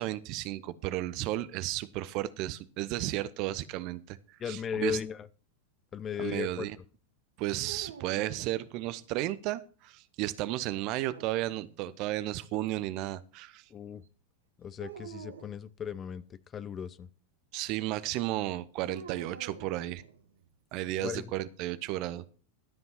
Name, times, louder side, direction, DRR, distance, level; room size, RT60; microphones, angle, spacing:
voice 1, 0.0-4.2 4.5-5.0 6.2-6.8 7.4-13.6 17.5-20.0 20.7-22.3, right 15 dB, 45° right, 0.7 m, -33 dB
voice 2, 4.4-5.3 5.9-6.7 13.7-14.0 14.6-17.1 21.0-21.3, left 8 dB, 25° left, 0.6 m, -36 dB
sound 1, 7.6-9.2 10.8-11.9 14.8-15.6 18.8-20.5, right 7 dB, 70° right, 1.0 m, -48 dB
12.5 x 5.5 x 5.7 m
figure-of-eight pair, 90°, 0 cm